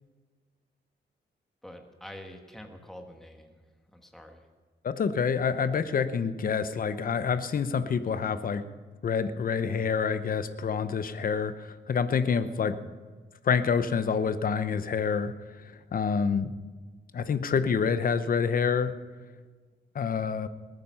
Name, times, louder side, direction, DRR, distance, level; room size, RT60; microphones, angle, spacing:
voice 1, 1.6-3.6 3.9-4.5, left 1 dB, ahead, 3 dB, 1.5 m, -46 dB
voice 2, 4.8-8.6 9.0-12.8 13.4-15.3 15.9-16.5 17.1-18.9 19.9-20.5, left 6 dB, 45° left, 12 dB, 0.8 m, -27 dB
20.5 x 9.2 x 5.6 m, 1.4 s
cardioid pair, 100°, 19 cm